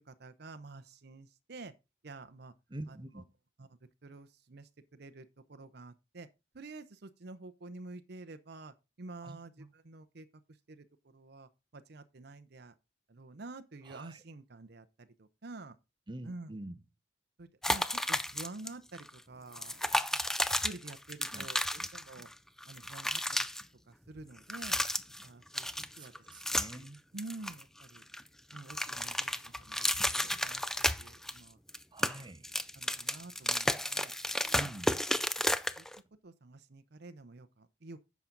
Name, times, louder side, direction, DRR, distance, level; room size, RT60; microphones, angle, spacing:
voice 1, 0.0-1.7 2.0-2.5 2.9-3.0 3.6-3.7 4.0-6.3 6.5-10.3 10.7-12.7 13.1-15.8 16.2-16.5 17.4-20.2 20.6-22.3 22.7-23.5 23.9-24.8 25.2-25.7 26.0-26.1 26.4-26.6 27.1-28.0 28.5-31.6 32.7-34.1 35.4-35.5 35.8-35.9 36.2-38.0, right 3 dB, 55° right, 0.7 m, -49 dB
voice 2, 2.7-3.2 9.2-9.7 13.8-14.2 16.1-16.8 21.3-21.5 21.8-21.9 26.0-27.0 31.9-32.5 34.5-34.9, right 1 dB, 25° right, 0.9 m, -46 dB
sound 1, 17.6-18.7 18.9-19.1 19.5-22.3 22.6-23.6 24.4-25.3 25.5-26.9 27.2-28.2 28.5-31.4 31.7-36.0, left 1 dB, ahead, 0.4 m, -32 dB
10.5 x 7.2 x 3.9 m
head